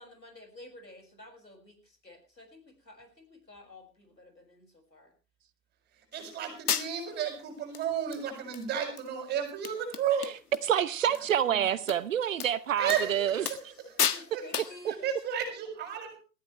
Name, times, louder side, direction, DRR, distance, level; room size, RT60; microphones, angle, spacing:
voice 1, 0.0-5.1 12.8-13.3 13.7-15.1, left 2 dB, 90° left, 6.0 m, -52 dB
sound 1, 6.1-6.2 6.7-7.2 7.7-7.8 8.1-8.6 9.0-9.1 9.4-9.5 9.6-10.7 10.9-11.2 11.9-12.0 12.4-12.5 12.9-13.0 13.4-13.7 14.0-14.3 14.5-14.8, left 8 dB, 65° left, 1.6 m, -32 dB
voice 2, 6.1-10.3 11.4-11.8 12.8-13.6 13.9-14.0 14.3-14.5 14.9-16.2, right 8 dB, 20° right, 6.5 m, -33 dB
voice 3, 10.6-13.4, right 10 dB, 50° right, 1.0 m, -27 dB
21.5 x 14.5 x 3.3 m
figure-of-eight pair, 120°, 49 cm